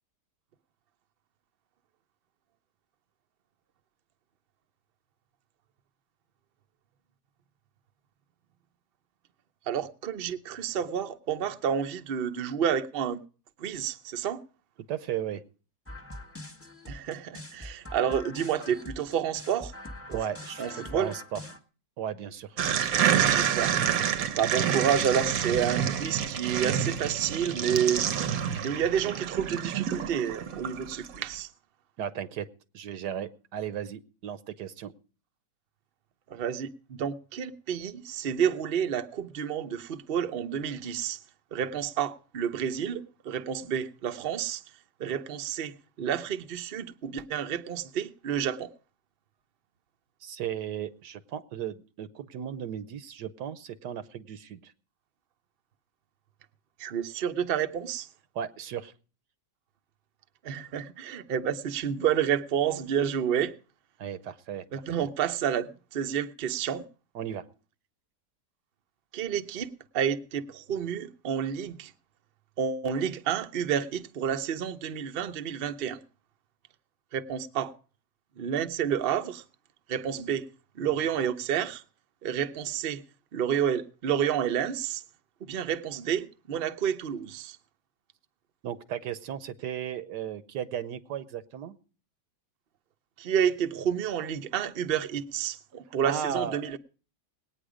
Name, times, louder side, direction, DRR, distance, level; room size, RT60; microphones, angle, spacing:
voice 1, 9.7-13.2 13.6-14.4 16.9-19.7 20.1-20.2 20.6-21.1 23.1-23.8 24.3-28.1 28.6-31.5 36.3-41.2 41.5-44.6 45.0-48.7 56.8-58.1 60.4-63.5 64.7-66.8 69.1-69.7 69.9-71.9 72.6-76.0 77.1-77.7 78.4-79.4 79.9-80.5 80.8-81.8 82.2-83.0 83.3-85.0 85.4-87.6 93.2-96.8, right 8 dB, 45° right, 0.8 m, -30 dB
voice 2, 14.9-15.4 20.1-21.4 22.0-23.0 32.0-32.5 32.7-34.9 50.2-54.7 58.3-58.9 64.0-65.1 67.1-67.5 88.6-91.8 96.0-96.8, right 9 dB, 85° right, 1.5 m, -36 dB
sound 1, 15.9-21.6, left 2 dB, 10° left, 1.1 m, -43 dB
sound 2, 22.6-31.2, right 9 dB, 65° right, 1.2 m, -28 dB
19.5 x 9.2 x 5.0 m
omnidirectional pair, 1.8 m